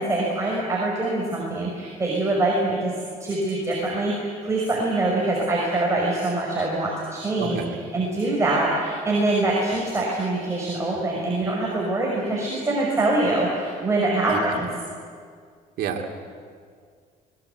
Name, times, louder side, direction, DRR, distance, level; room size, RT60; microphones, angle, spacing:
voice 1, 0.0-2.9 3.2-7.6 7.9-14.7, right 2 dB, 15° right, -3 dB, 5.9 m, -24 dB
voice 2, 7.4-7.8 14.3-14.6 15.8-16.1, right 7 dB, 70° right, 2 dB, 3.0 m, -30 dB
24.5 x 21.5 x 8.3 m, 2.1 s
cardioid pair, 110°, 17 cm